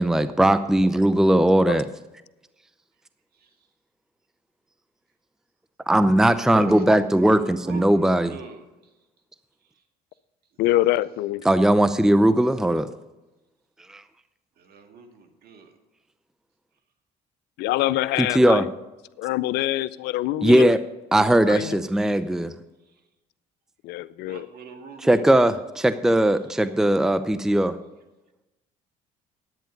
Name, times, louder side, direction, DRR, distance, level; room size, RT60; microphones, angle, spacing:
voice 1, 0.0-1.9 5.9-8.3 11.4-12.9 13.9-14.0 18.2-18.7 20.4-20.8 21.1-22.5 25.0-27.7, right 1 dB, 5° right, 12 dB, 0.6 m, -19 dB
voice 2, 7.3-8.6 14.6-15.7 24.2-25.2, right 5 dB, 65° right, 5 dB, 1.8 m, -43 dB
voice 3, 10.6-11.4 17.6-18.7 19.2-20.7 21.5-21.8 23.8-24.5, left 15 dB, 75° left, 18 dB, 0.5 m, -25 dB
10.5 x 9.0 x 5.2 m, 1.0 s
supercardioid pair, 70°, 17 cm